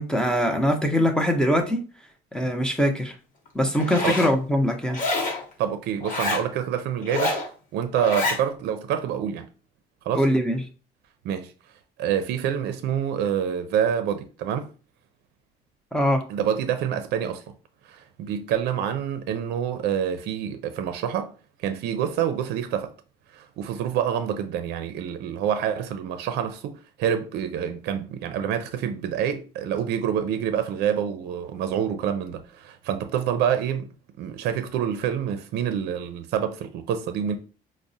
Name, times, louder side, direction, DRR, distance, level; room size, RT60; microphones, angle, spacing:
voice 1, 0.0-1.8 2.3-3.1 3.5-5.0 10.1-10.6 15.9-16.2, equal, 5° left, 0.6 m, -22 dB
Zipper (clothing), 3.7-4.3 4.9-5.4 6.0-6.5 7.0-7.5 7.9-8.4, left 3 dB, 45° left, 1.1 m, -27 dB
voice 2, 5.6-7.4 7.7-9.5 10.1-10.2 11.2-11.5 12.0-14.7 16.3-17.4 17.9-21.3 21.6-22.9 23.3-33.9 34.2-37.3, right 9 dB, 80° right, 0.4 m, -27 dB
4.6 x 2.0 x 2.6 m
cardioid pair, 110°, 17 cm